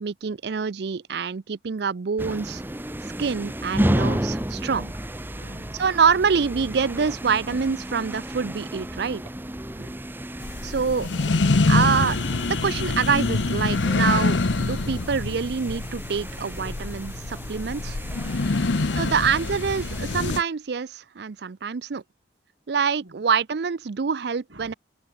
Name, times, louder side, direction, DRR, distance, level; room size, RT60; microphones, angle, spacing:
voice 1, 0.0-2.6 3.2-4.9 5.8-9.2 10.6-11.1 11.7-18.0 19.0-22.0 22.7-24.7, right 6 dB, 60° right, 0.5 m, -26 dB
sound 1, 2.2-20.4, right 1 dB, 10° right, 1.0 m, -32 dB
voice 2, 5.3-5.8 9.8-10.1 18.4-19.2 23.0-23.2 24.5-24.8, right 1 dB, 80° right, 2.9 m, -48 dB
sound 2, 10.4-20.4, left 3 dB, 80° left, 0.9 m, -25 dB
head